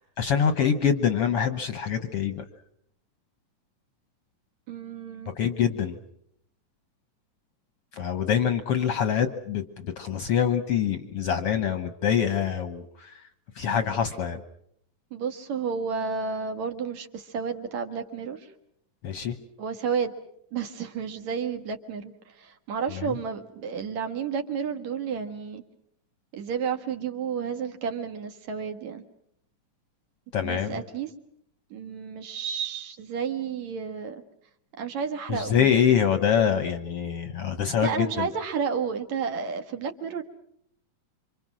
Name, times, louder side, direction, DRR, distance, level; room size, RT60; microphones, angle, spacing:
voice 1, 0.0-2.4 5.4-6.0 7.9-13.2 13.6-14.4 19.0-19.4 22.9-23.2 30.3-30.8 35.3-38.3, left 8 dB, 60° left, 9 dB, 1.6 m, -25 dB
voice 2, 4.7-5.4 15.1-18.5 19.6-20.1 20.5-25.6 26.3-29.0 30.4-31.1 31.7-34.2 34.8-35.7 37.8-40.2, right 6 dB, 65° right, 5 dB, 2.7 m, -31 dB
27.5 x 26.0 x 6.2 m, 0.72 s
omnidirectional pair, 3.7 m